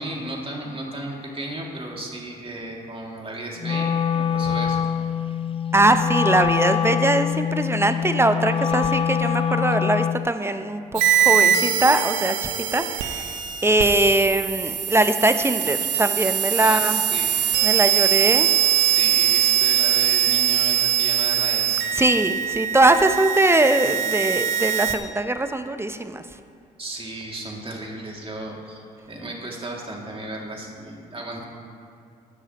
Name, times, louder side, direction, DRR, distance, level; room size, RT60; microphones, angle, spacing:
voice 1, 0.0-4.9 16.6-17.3 17.7-17.8 18.8-22.0 26.8-31.4, right 1 dB, 25° right, -1 dB, 2.7 m, -34 dB
Wind instrument woodwind instrument, 3.6-10.3, left 8 dB, 30° left, 0.4 m, -24 dB
voice 2, 5.7-17.0 17.6-18.5 22.0-26.2, right 2 dB, 10° right, 9 dB, 0.8 m, -21 dB
sound 1, 10.9-24.9, right 9 dB, 70° right, 0.9 m, -22 dB
16.0 x 9.9 x 3.1 m, 2.4 s
hypercardioid pair, 45°, 20 cm